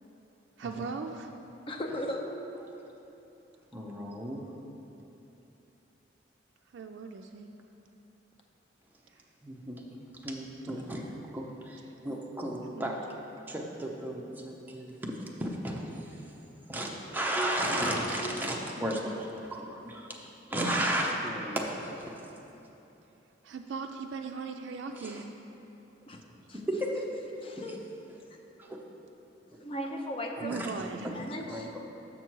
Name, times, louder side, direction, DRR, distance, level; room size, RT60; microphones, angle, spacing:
voice 1, 0.6-1.3 6.7-7.5 10.7-10.8 12.7-13.0 23.4-25.3 30.4-31.1, right 5 dB, 75° right, 3 dB, 0.3 m, -38 dB
voice 2, 1.7-2.5 17.7-18.5 22.5-22.6 26.1-26.2 26.5-26.6 27.4-27.8 29.6-30.6 31.1-31.7, equal, 30° left, 2 dB, 0.5 m, -37 dB
voice 3, 3.7-4.4 9.4-11.8 12.0-12.9 13.5-16.2 16.7-20.2 20.5-22.3 24.9-25.2 26.5-27.1 27.4-27.8 28.6-28.8 30.5-31.8, right 1 dB, 10° right, -1 dB, 0.6 m, -34 dB
6.6 x 5.9 x 4.6 m, 3.0 s
head